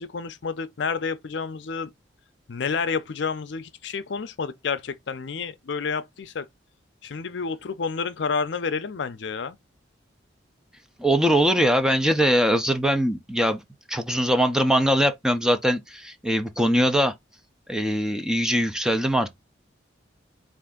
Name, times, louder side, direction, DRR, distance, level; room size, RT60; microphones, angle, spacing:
voice 1, 0.0-1.9 2.5-6.4 7.0-9.6, left 5 dB, 65° left, 0.5 m, -29 dB
voice 2, 11.0-13.6 13.9-17.1 17.7-19.3, equal, 5° right, 0.4 m, -22 dB
4.3 x 2.5 x 3.6 m
head